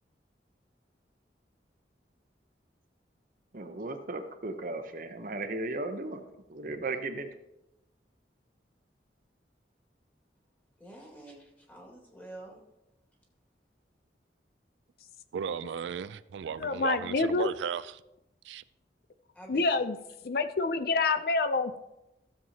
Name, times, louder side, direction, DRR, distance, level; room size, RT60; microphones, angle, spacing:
voice 1, 3.5-6.2 6.5-7.3, right 2 dB, 50° right, 0.8 m, -36 dB
voice 2, 10.8-12.6 16.4-16.5 19.3-19.7, right 1 dB, 10° left, 2.1 m, -48 dB
voice 3, 15.3-18.0 18.4-18.6, right 7 dB, 85° right, 0.3 m, -35 dB
voice 4, 16.6-17.5 19.5-20.0 20.2-21.8, left 3 dB, 55° left, 0.5 m, -27 dB
15.0 x 7.3 x 2.8 m
head